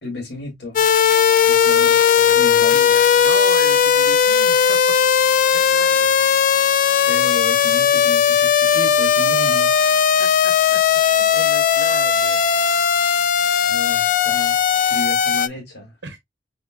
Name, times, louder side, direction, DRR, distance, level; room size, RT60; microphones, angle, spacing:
voice 1, 0.0-0.9 1.5-2.0 2.3-2.9 5.6-5.7 7.1-9.8 13.7-14.6 14.9-15.9, left 3 dB, 80° left, 2.6 m, -33 dB
sound 1, 0.8-15.5, left 7 dB, 50° left, 0.3 m, -17 dB
voice 2, 1.7-4.8 5.5-6.2 10.2-10.8 11.1-12.5 16.0-16.2, right 4 dB, 85° right, 0.7 m, -36 dB
4.3 x 3.5 x 2.4 m
head